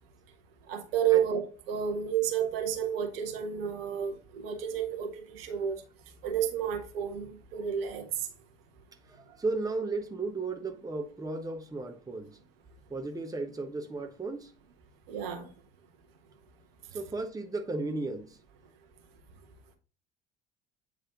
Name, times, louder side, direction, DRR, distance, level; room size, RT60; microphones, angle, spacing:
voice 1, 0.7-1.4 1.7-5.8 6.2-8.1 15.1-15.5, right 9 dB, 65° right, 1.3 m, -30 dB
voice 2, 9.1-12.4 12.9-14.5 16.9-18.4, right 3 dB, 10° right, 1.1 m, -35 dB
8.9 x 3.3 x 3.8 m
figure-of-eight pair, 60°, 31 cm